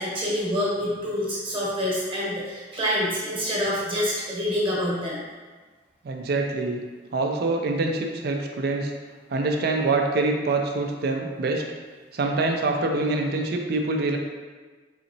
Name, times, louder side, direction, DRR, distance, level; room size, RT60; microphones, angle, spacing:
voice 1, 0.0-5.2, equal, 30° right, -6 dB, 1.0 m, -26 dB
voice 2, 6.0-6.8 7.1-8.9 9.3-11.6 12.1-14.2, right 3 dB, 60° right, 3 dB, 0.4 m, -25 dB
4.1 x 2.9 x 2.6 m, 1.4 s
head